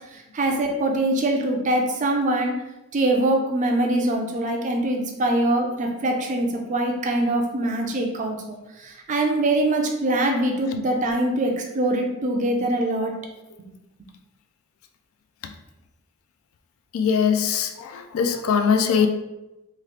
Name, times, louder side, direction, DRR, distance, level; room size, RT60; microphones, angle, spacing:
voice 1, 0.1-2.5 2.9-13.1, right 1 dB, 35° right, 2 dB, 0.4 m, -23 dB
voice 2, 16.9-19.1, left 6 dB, 65° left, 7 dB, 0.3 m, -21 dB
3.0 x 2.3 x 3.2 m, 0.98 s
head